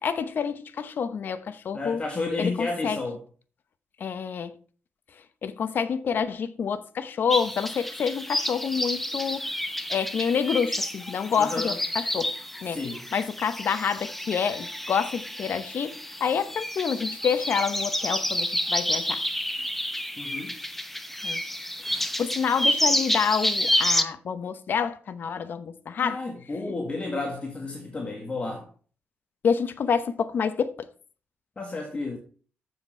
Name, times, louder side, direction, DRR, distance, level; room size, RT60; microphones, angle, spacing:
voice 1, 0.0-2.0 2.4-3.0 4.0-4.6 5.4-9.5 9.9-12.3 12.6-12.8 13.1-19.2 21.2-21.4 22.2-26.2 29.4-30.7, left 6 dB, 55° left, 0.8 m, -28 dB
voice 2, 1.7-3.2 11.4-11.7 12.7-13.0 20.2-20.5 26.0-28.7 31.6-32.2, left 3 dB, 30° left, 1.7 m, -31 dB
sound 1, 7.3-24.0, left 1 dB, 5° left, 0.8 m, -29 dB
7.4 x 6.6 x 5.3 m
cardioid pair, 110°, 4 cm